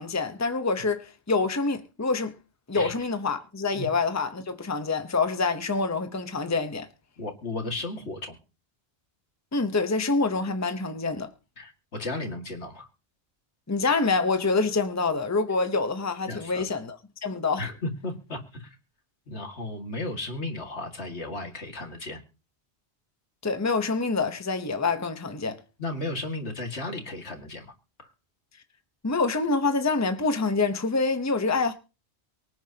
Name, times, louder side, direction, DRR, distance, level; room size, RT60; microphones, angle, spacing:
voice 1, 0.0-2.3 2.7-6.9 9.5-11.3 13.7-17.0 17.2-17.7 23.4-25.6 29.0-31.7, left 3 dB, 15° left, 0.9 m, -26 dB
voice 2, 7.2-8.4 11.6-12.9 16.3-16.6 17.6-18.7 19.3-22.2 25.8-27.7 28.0-28.1, left 2 dB, 75° left, 2.4 m, -34 dB
24.0 x 9.3 x 2.9 m
omnidirectional pair, 1.1 m